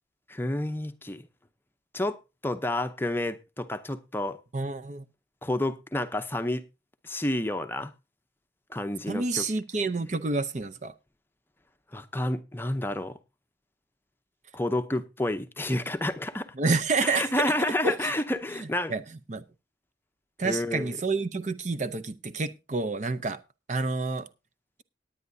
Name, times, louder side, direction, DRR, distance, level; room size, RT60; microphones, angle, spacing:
voice 1, 0.3-1.2 1.9-2.2 2.4-4.4 5.4-6.6 7.0-7.9 8.7-9.4 11.9-13.1 14.5-16.5 17.0-18.9 20.4-21.0, left 1 dB, 10° left, 0.7 m, -29 dB
voice 2, 4.5-5.0 9.1-10.9 16.6-17.4 17.8-18.1 18.9-19.0 19.3-19.4 20.4-23.4 23.7-24.3, right 3 dB, 40° right, 0.6 m, -28 dB
18.0 x 9.8 x 2.7 m
head